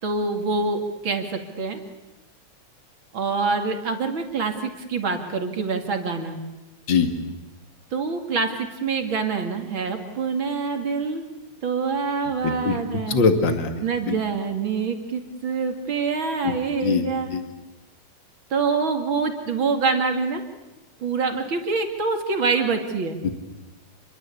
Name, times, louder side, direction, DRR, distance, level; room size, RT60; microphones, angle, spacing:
voice 1, 0.0-1.8 3.1-6.4 7.9-8.5 8.8-11.3 11.6-13.2 13.8-17.3 18.5-20.4 21.0-23.2, right 4 dB, 40° right, 5 dB, 3.0 m, -25 dB
voice 2, 12.4-12.8 13.1-13.7 14.1-14.2 16.4-16.5 16.8-17.0 17.3-17.4 23.2-23.3, left 5 dB, 40° left, 7 dB, 2.6 m, -21 dB
28.0 x 22.5 x 8.6 m, 1.0 s
omnidirectional pair, 3.5 m